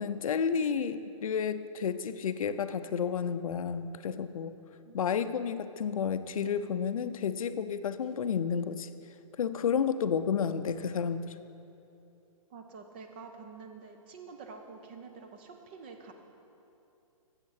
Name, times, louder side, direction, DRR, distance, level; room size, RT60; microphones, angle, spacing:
voice 1, 0.0-4.5 4.9-8.9 9.4-11.3, left 7 dB, 70° left, 11 dB, 0.5 m, -31 dB
voice 2, 12.5-16.1, right 4 dB, 20° right, 5 dB, 0.5 m, -48 dB
8.4 x 7.4 x 6.4 m, 2.8 s
hypercardioid pair, 170°, 18 cm